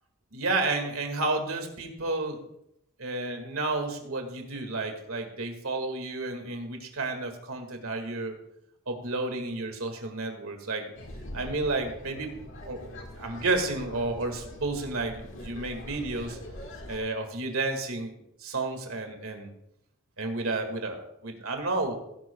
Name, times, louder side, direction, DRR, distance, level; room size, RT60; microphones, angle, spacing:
voice 1, 0.3-2.4 3.0-8.4 8.9-10.9 11.3-12.3 12.7-16.4 16.9-18.1 18.4-19.5 20.2-22.0, right 2 dB, 80° right, 4 dB, 2.0 m, -31 dB
sound 1, 10.9-17.0, left 1 dB, 65° left, 1.8 m, -43 dB
17.5 x 10.5 x 2.3 m, 0.81 s
head